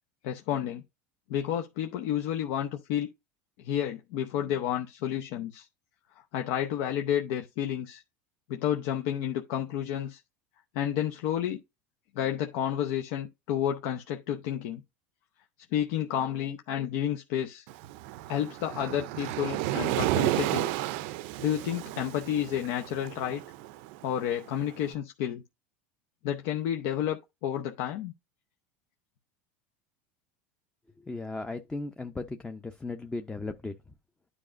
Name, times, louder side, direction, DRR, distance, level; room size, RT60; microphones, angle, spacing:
voice 1, 0.2-0.8 1.3-3.1 3.6-5.7 6.3-8.0 8.5-10.2 10.7-11.6 12.2-14.8 15.7-17.6 18.3-20.7 21.4-23.4 24.0-25.4 26.2-28.1, left 10 dB, 65° left, 0.7 m, -30 dB
Waves surf, 17.7-24.8, right 16 dB, 70° right, 0.5 m, -32 dB
voice 2, 31.0-33.8, left 3 dB, 10° left, 0.6 m, -36 dB
9.8 x 4.8 x 2.5 m
supercardioid pair, 115°, 7 cm